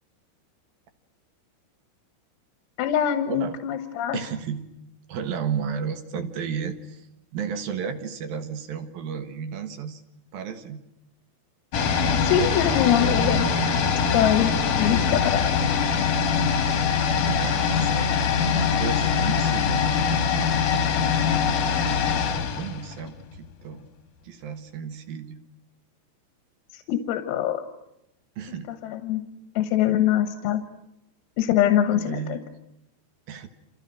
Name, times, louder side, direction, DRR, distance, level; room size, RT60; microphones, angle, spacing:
voice 1, 2.8-4.2 12.2-13.6 14.1-14.5 14.8-15.7 26.7-27.6 28.8-29.2 29.6-30.6 31.4-32.4, left 11 dB, 85° left, 7 dB, 4.1 m, -23 dB
voice 2, 4.1-4.7 5.1-7.1 7.3-10.0 10.3-10.8 17.2-18.2 18.5-19.9 22.0-23.8 24.2-25.4 28.4-28.7 31.9-32.4 33.3-33.5, right 7 dB, 65° right, 9 dB, 2.6 m, -33 dB
sound 1, 11.7-23.5 23.7-23.8, left 6 dB, 50° left, 2.8 m, -23 dB
30.0 x 27.5 x 6.3 m, 0.83 s
omnidirectional pair, 5.9 m